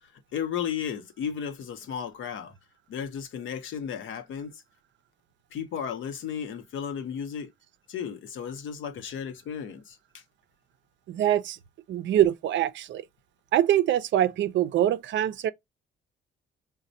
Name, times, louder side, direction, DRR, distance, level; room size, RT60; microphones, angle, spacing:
voice 1, 0.0-2.5 2.9-4.6 5.5-7.5 7.9-10.2, left 8 dB, 75° left, 0.8 m, -34 dB
voice 2, 11.1-11.6 11.9-13.0 13.5-15.5, right 11 dB, 65° right, 0.5 m, -24 dB
4.1 x 2.1 x 2.6 m
cardioid pair, 85°, 20 cm